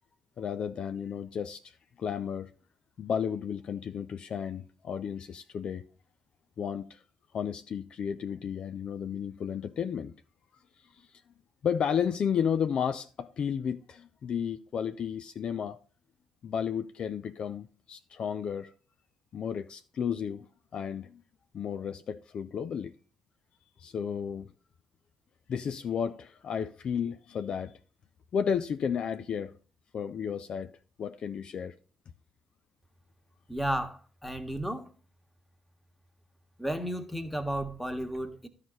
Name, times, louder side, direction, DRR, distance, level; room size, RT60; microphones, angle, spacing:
voice 1, 0.4-2.5 3.0-5.8 6.6-7.0 7.3-10.1 11.6-15.8 16.4-18.7 19.3-20.5 20.7-21.2 21.5-22.9 23.8-24.5 25.5-27.7 28.3-29.5 29.9-30.7 31.0-31.7, left 7 dB, 50° left, 0.5 m, -33 dB
voice 2, 33.5-34.9 36.6-38.5, right 1 dB, 5° left, 1.7 m, -33 dB
13.0 x 4.9 x 4.0 m
figure-of-eight pair, 45°, 2 cm